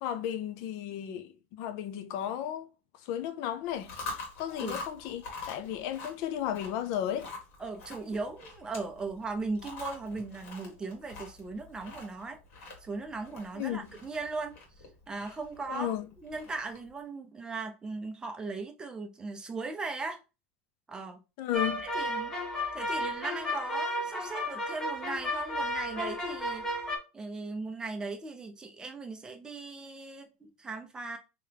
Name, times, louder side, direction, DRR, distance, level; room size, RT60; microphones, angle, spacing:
voice 1, 0.0-2.7 3.0-3.9 4.4-7.3 13.5-13.9 15.7-16.1 21.4-21.9 22.9-23.1, left 10 dB, 45° left, 0.4 m, -34 dB
Chewing mastication, 3.7-16.9, left 3 dB, 65° left, 1.6 m, -45 dB
voice 2, 7.6-12.4 12.8-14.6 15.1-20.2 20.9-21.2 21.9-22.3 22.7-26.6 27.1-31.2, right 3 dB, 10° right, 0.6 m, -38 dB
sound 1, 21.5-27.0, left 1 dB, 10° left, 0.9 m, -33 dB
3.5 x 2.9 x 3.3 m
supercardioid pair, 165°, 7 cm